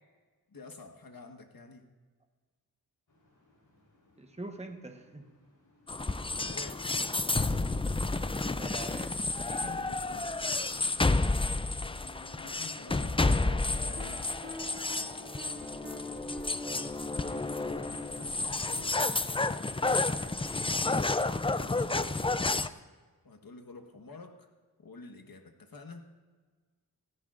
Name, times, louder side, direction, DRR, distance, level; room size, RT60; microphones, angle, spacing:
voice 1, 0.5-1.9 6.4-6.9 9.5-10.3 12.3-14.3 17.1-21.0 21.6-22.8 23.2-24.5 24.8-26.1, left 3 dB, 65° left, 4 dB, 1.4 m, -49 dB
sound 1, 3.1-16.7, left 2 dB, 85° left, 3.7 m, -60 dB
voice 2, 4.2-5.3 8.6-9.1 9.4-9.8, right 2 dB, 15° right, 4 dB, 1.1 m, -44 dB
sound 2, 5.9-22.7, left 3 dB, 15° left, 0.4 m, -31 dB
sound 3, 14.0-20.7, equal, 35° right, 1.8 m, -49 dB
16.5 x 15.5 x 2.5 m, 1.4 s
wide cardioid pair, 70°, 37 cm